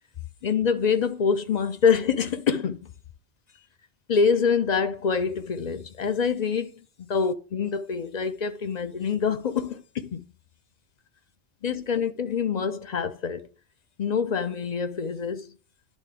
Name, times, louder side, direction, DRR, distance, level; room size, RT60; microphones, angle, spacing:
voice 1, 0.4-2.9 4.1-6.7 7.0-10.2 11.6-13.5 14.0-15.5, left 6 dB, 50° left, 0.6 m, -25 dB
10.5 x 3.7 x 3.4 m
omnidirectional pair, 1.1 m